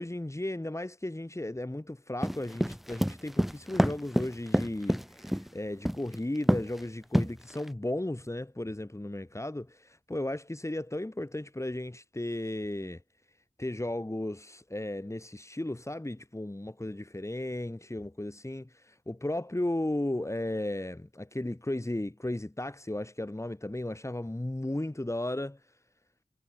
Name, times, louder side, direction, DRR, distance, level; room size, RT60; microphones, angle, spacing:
voice 1, 0.0-13.0 13.6-25.6, left 1 dB, 20° left, 6.2 m, -35 dB
sound 1, 2.2-5.5 5.8-6.2 6.5-6.8 7.1-7.7, equal, ahead, 0.9 m, -26 dB
wide cardioid pair, 55°, 14 cm